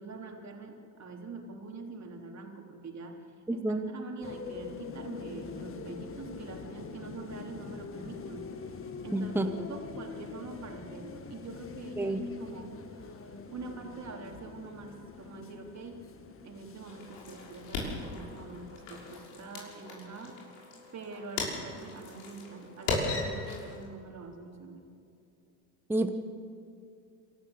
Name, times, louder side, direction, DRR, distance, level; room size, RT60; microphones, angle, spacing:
voice 1, 0.0-3.2 3.5-8.7 9.0-9.4 9.7-16.1 16.4-20.4 20.9-24.8, right 3 dB, 35° right, 2 dB, 3.5 m, -45 dB
voice 2, 3.5-3.9 9.1-9.7 12.0-12.2 25.9-26.1, right 1 dB, 5° right, 6 dB, 1.2 m, -29 dB
sound 1, 4.2-19.3, left 5 dB, 25° left, 1.7 m, -44 dB
sound 2, 16.9-23.8, left 3 dB, 75° left, 6.3 m, -38 dB
26.5 x 13.0 x 8.0 m, 2.4 s
hypercardioid pair, 90°, 47 cm